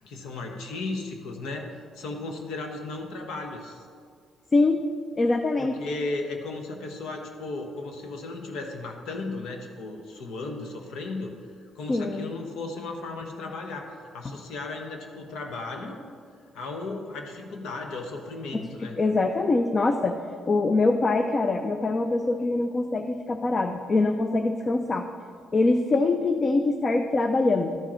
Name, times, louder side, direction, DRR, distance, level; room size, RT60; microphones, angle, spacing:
voice 1, 0.0-3.8 5.6-16.0 16.5-19.0, left 3 dB, 85° left, 3 dB, 1.1 m, -35 dB
voice 2, 4.5-4.8 5.2-5.7 11.9-12.3 19.0-20.2 20.5-25.1 25.5-27.8, left 3 dB, 35° left, 6 dB, 0.5 m, -23 dB
12.5 x 4.9 x 4.4 m, 2.1 s
cardioid pair, 90°, 0 cm